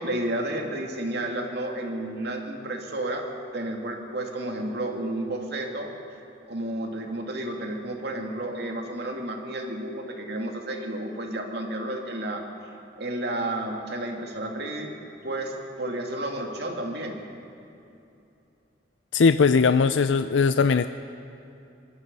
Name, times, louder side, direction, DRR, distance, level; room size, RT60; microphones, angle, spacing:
voice 1, 0.0-3.3 3.5-5.9 6.5-12.5 13.0-14.9 15.2-17.2, right 1 dB, 60° right, 2 dB, 2.5 m, -31 dB
voice 2, 19.1-20.9, left 5 dB, 85° left, 11 dB, 0.5 m, -19 dB
25.0 x 20.5 x 5.5 m, 2.8 s
head